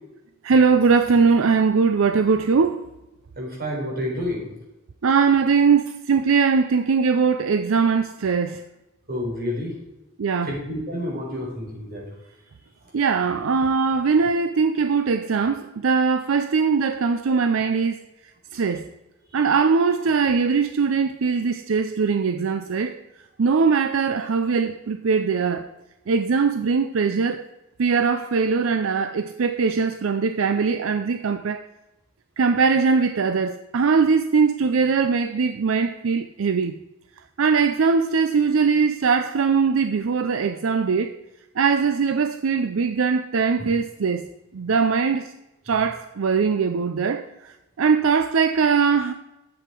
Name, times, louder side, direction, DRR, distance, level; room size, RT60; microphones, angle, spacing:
voice 1, 0.4-2.8 5.0-8.6 10.2-10.5 12.9-18.1 18.5-18.9 19.3-23.0 23.4-25.7 26.1-27.4 27.8-31.6 32.4-36.8 37.4-41.1 41.6-44.3 44.5-45.3 45.7-49.1, right 5 dB, 80° right, 0.5 m, -21 dB
voice 2, 3.4-4.5 9.1-9.7 10.5-12.1 43.6-43.7, left 1 dB, 50° right, 4.1 m, -29 dB
11.0 x 7.9 x 4.5 m
head